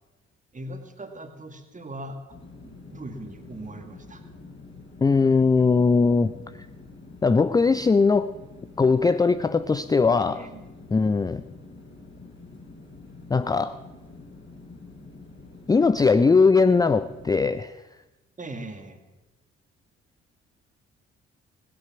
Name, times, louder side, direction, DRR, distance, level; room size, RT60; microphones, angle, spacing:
voice 1, 0.5-2.4 2.6-4.2 10.2-10.7 18.4-19.0, right 1 dB, 25° right, 6 dB, 2.0 m, -39 dB
sound 1, 2.3-17.3, left 3 dB, 35° left, 4.1 m, -46 dB
voice 2, 5.0-6.3 7.2-8.3 8.8-10.4 10.9-11.4 13.3-13.8 15.7-17.7, left 4 dB, 10° left, 13 dB, 0.4 m, -20 dB
17.0 x 10.5 x 5.9 m, 1.1 s
figure-of-eight pair, 45°, 32 cm